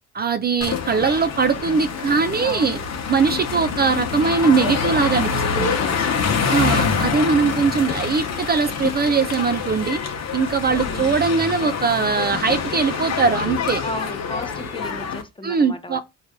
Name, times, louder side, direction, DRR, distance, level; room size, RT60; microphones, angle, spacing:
voice 1, 0.1-2.8 3.1-5.8 6.5-10.0 10.3-13.8 15.4-16.0, right 5 dB, 35° right, 0.4 m, -21 dB
sound 1, 0.6-15.2, left 6 dB, 60° left, 0.9 m, -25 dB
voice 2, 2.0-2.9 5.4-6.9 10.7-11.2 13.8-16.0, left 1 dB, 15° left, 0.6 m, -36 dB
3.9 x 2.5 x 3.5 m
cardioid pair, 90°, 30 cm